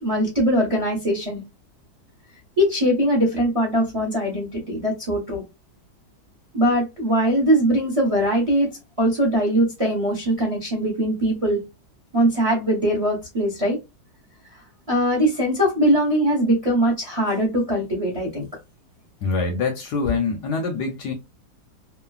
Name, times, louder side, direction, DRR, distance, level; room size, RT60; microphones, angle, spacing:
voice 1, 0.0-1.4 2.6-5.4 6.5-8.7 9.0-11.6 12.1-13.8 14.9-18.5, equal, 25° right, 0.7 m, -21 dB
voice 2, 19.2-21.1, left 4 dB, 70° left, 1.1 m, -25 dB
3.1 x 2.3 x 2.3 m
omnidirectional pair, 2.1 m